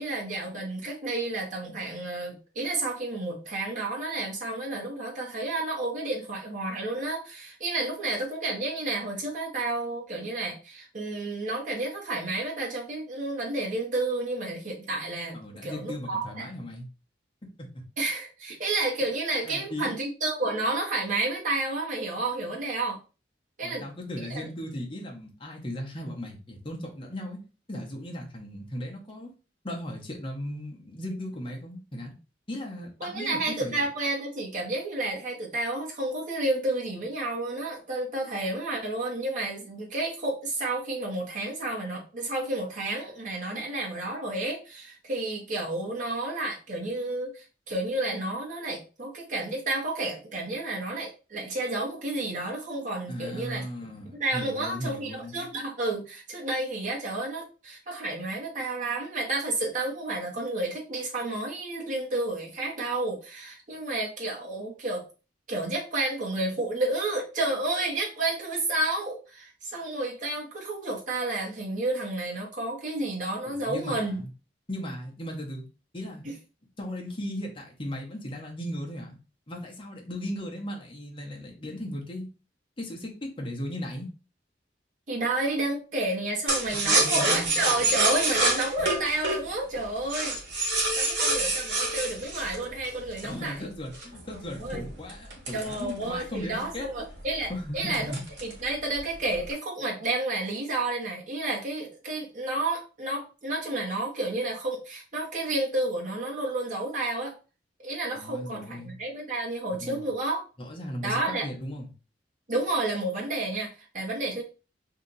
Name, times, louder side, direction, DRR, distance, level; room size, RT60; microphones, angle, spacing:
voice 1, 0.0-16.4 18.0-23.0 23.6-23.8 33.0-65.0 65.5-74.2 76.2-76.3 85.1-90.4 91.0-93.7 94.5-94.8 95.5-98.1 98.4-107.3 107.8-110.4 111.0-111.5 112.5-114.4, right 2 dB, 45° right, -2 dB, 1.1 m, -31 dB
voice 2, 15.3-16.9 17.7-17.8 19.4-19.9 23.6-27.4 27.7-29.3 29.6-32.1 32.5-33.8 53.1-55.5 73.5-74.3 74.7-75.6 75.9-76.2 76.8-79.2 79.5-82.3 82.8-84.1 86.7-87.5 93.2-97.1 97.5-98.2 108.2-109.0 109.7-110.1 110.6-111.9, left 1 dB, 30° left, -1 dB, 0.9 m, -37 dB
sound 1, 86.5-93.4 93.9-96.4 96.8-96.9 97.2-97.5 97.9-98.6 99.0-99.5, right 2 dB, 65° right, 1.3 m, -27 dB
2.8 x 2.5 x 3.9 m, 0.33 s
head